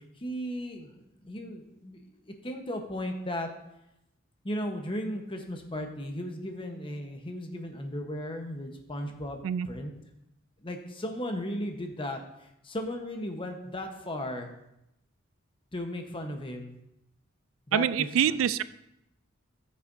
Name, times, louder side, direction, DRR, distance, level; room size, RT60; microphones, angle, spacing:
voice 1, 0.0-2.0 2.4-3.5 4.4-9.9 10.6-14.5 15.7-16.8 17.7-18.4, left 1 dB, 25° left, 4 dB, 1.0 m, -36 dB
voice 2, 17.7-18.6, right 9 dB, 70° right, 16 dB, 0.3 m, -25 dB
14.0 x 6.7 x 2.7 m, 0.84 s
head